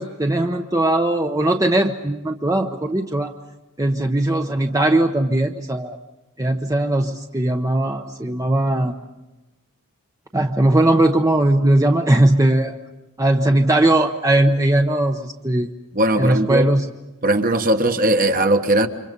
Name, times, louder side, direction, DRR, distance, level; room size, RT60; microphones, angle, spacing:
voice 1, 0.0-3.3 3.8-6.0 6.4-8.9 10.3-12.8 13.2-15.7 16.2-16.9, right 1 dB, 15° right, 0.8 m, -19 dB
voice 2, 15.9-16.6 17.2-18.9, right 1 dB, 40° right, 1.4 m, -18 dB
29.5 x 25.5 x 5.4 m
head